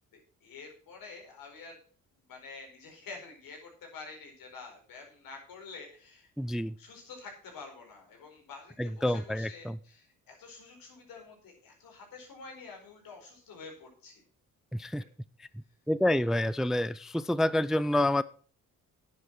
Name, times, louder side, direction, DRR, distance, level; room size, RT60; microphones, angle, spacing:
voice 1, 0.0-1.8 2.3-6.3 6.8-14.1, left 4 dB, 80° left, 2 dB, 4.8 m, -48 dB
voice 2, 6.4-6.7 8.8-9.8 14.7-15.0 15.4-18.2, left 1 dB, ahead, 17 dB, 0.4 m, -28 dB
9.5 x 8.3 x 6.1 m, 0.43 s
cardioid pair, 75°, 34 cm